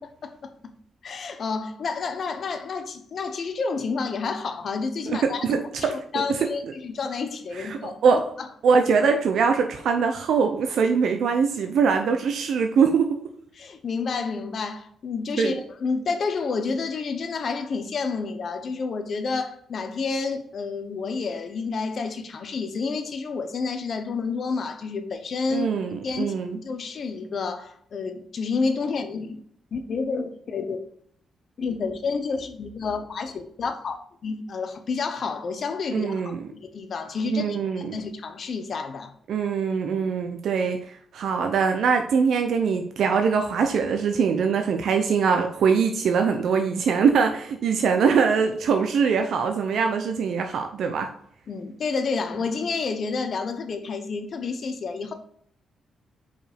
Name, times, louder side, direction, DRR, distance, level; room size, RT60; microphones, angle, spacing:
voice 1, 1.0-8.5 13.6-25.7 26.0-29.4 29.7-30.8 31.6-39.1 51.5-55.1, left 4 dB, 45° left, 0.8 m, -30 dB
voice 2, 5.2-6.5 7.6-8.2 8.6-13.2 15.4-15.5 25.5-26.6 35.9-36.4 37.3-38.0 39.3-51.1, right 6 dB, 70° right, 0.6 m, -23 dB
5.1 x 5.0 x 4.3 m
wide cardioid pair, 150°, 0 cm